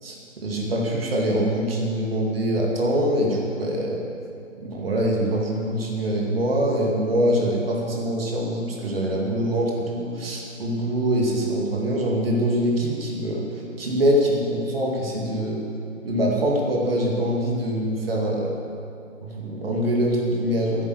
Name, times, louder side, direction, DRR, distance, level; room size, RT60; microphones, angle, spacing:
voice 1, 0.0-4.0 4.6-13.4 13.8-15.6 16.0-18.5 19.2-20.9, equal, 45° right, -2 dB, 2.5 m, -24 dB
9.9 x 8.8 x 8.4 m, 2.5 s
figure-of-eight pair, 150°, 39 cm